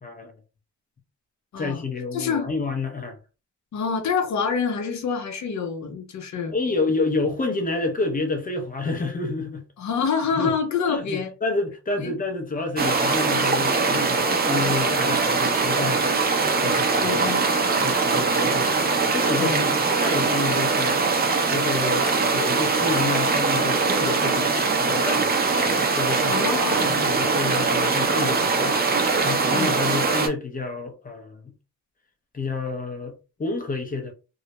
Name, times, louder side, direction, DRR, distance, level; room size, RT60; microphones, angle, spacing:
voice 1, 0.0-0.3 1.6-3.2 6.5-9.7 10.3-10.6 10.9-16.1 16.6-17.2 17.8-18.7 19.1-21.0 21.5-22.1 22.3-25.4 26.0-26.5 26.8-28.8 29.2-31.5 32.3-34.1, left 3 dB, 30° left, 0.7 m, -29 dB
voice 2, 1.5-1.9 2.1-2.5 3.7-6.5 9.8-11.3 12.0-12.1 17.0-17.4 19.4-19.6 26.3-27.1 29.5-29.7, left 6 dB, 65° left, 0.7 m, -27 dB
sound 1, 12.8-30.3, right 4 dB, 30° right, 0.6 m, -22 dB
2.3 x 2.1 x 2.8 m
cardioid pair, 110°, 30 cm